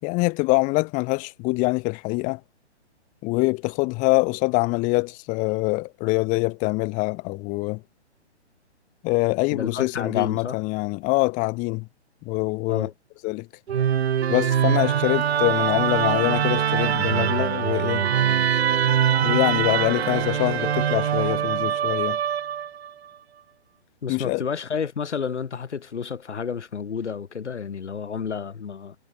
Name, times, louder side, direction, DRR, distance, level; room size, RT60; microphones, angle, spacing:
voice 1, 0.0-2.4 3.2-7.8 9.0-11.9 12.2-12.9 13.2-13.5 14.3-18.1 19.2-22.2 24.1-24.4, left 26 dB, 20° left, 3.2 m, -24 dB
voice 2, 9.5-10.6 12.7-12.9 24.0-29.0, left 6 dB, 85° left, 2.6 m, -30 dB
Musical instrument, 13.7-22.9, right 9 dB, 65° right, 1.3 m, -23 dB
hypercardioid pair, 155°, 34 cm